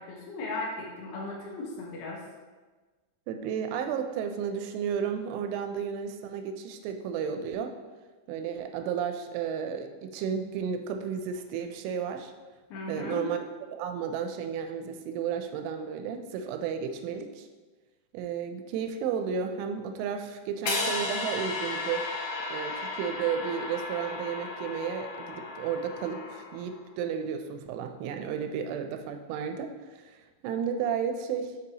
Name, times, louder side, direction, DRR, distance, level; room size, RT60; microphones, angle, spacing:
voice 1, 0.0-2.2 12.7-13.3, left 2 dB, 90° left, -2 dB, 2.0 m, -36 dB
voice 2, 3.3-7.7 8.3-12.3 12.9-13.4 13.7-17.5 18.1-22.1 22.5-30.2 30.4-31.5, right 7 dB, 85° right, 6 dB, 2.9 m, -33 dB
sound 1, 20.7-26.8, left 3 dB, 75° left, 2.8 m, -34 dB
6.4 x 5.4 x 2.8 m, 1.3 s
omnidirectional pair, 5.6 m